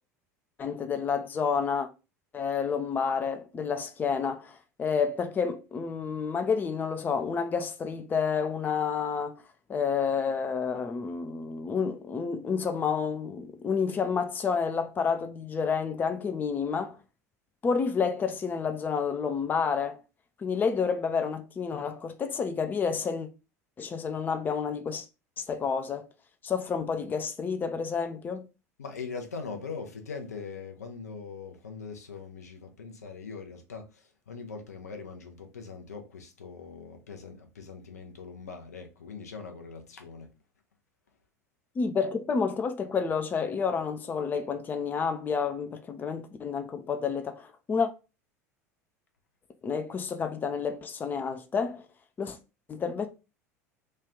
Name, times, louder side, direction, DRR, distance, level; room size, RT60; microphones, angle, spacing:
voice 1, 0.6-1.9 2.3-9.3 9.7-17.0 17.6-20.0 20.4-23.3 23.8-25.1 25.4-26.1 26.4-28.5 41.8-47.9 49.6-51.8 52.2-52.4 52.7-53.1, left 6 dB, 20° left, 0.4 m, -29 dB
voice 2, 28.8-40.3, left 5 dB, 75° left, 0.6 m, -41 dB
3.2 x 2.4 x 3.6 m
figure-of-eight pair, 70°, 9 cm